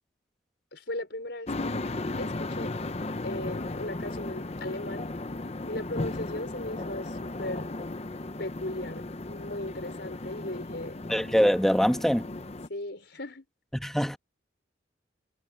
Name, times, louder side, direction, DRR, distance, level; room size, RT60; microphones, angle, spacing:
voice 1, 0.7-1.8 2.2-2.7 3.2-5.1 5.6-7.7 8.4-10.9 12.7-13.4, left 1 dB, 65° left, 4.9 m, -37 dB
sound 1, 1.5-12.7, left 2 dB, 35° left, 0.7 m, -35 dB
voice 2, 11.1-12.3 13.7-14.2, equal, ahead, 1.3 m, -24 dB
head